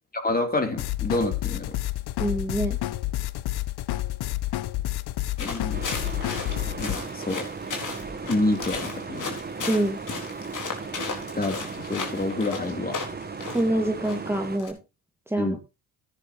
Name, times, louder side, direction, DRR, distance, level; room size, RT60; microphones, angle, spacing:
voice 1, 0.1-1.7 5.4-5.8 6.8-7.4 8.3-9.3 11.4-13.0 15.4-15.6, left 2 dB, 20° left, 5 dB, 3.3 m, -28 dB
sound 1, 0.8-7.0, left 15 dB, 70° left, 0.8 m, -29 dB
voice 2, 2.2-2.8 9.7-10.0 13.5-14.8 15.3-15.6, right 1 dB, 5° right, 2 dB, 1.8 m, -25 dB
sound 2, 5.4-14.7, left 4 dB, 50° left, 4.2 m, -36 dB
sound 3, 5.7-14.6, right 5 dB, 25° right, 1.1 m, -37 dB
14.5 x 10.0 x 3.0 m, 0.27 s
supercardioid pair, 65°, 40 cm